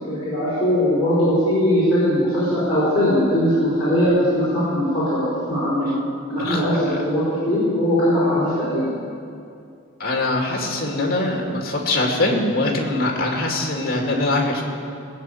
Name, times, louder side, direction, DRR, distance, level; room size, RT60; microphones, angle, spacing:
voice 1, 0.0-5.9 6.3-9.0, equal, 25° left, -12 dB, 4.9 m, -20 dB
voice 2, 10.0-14.6, left 2 dB, 45° left, 0 dB, 2.5 m, -22 dB
20.0 x 6.9 x 9.1 m, 2.4 s
head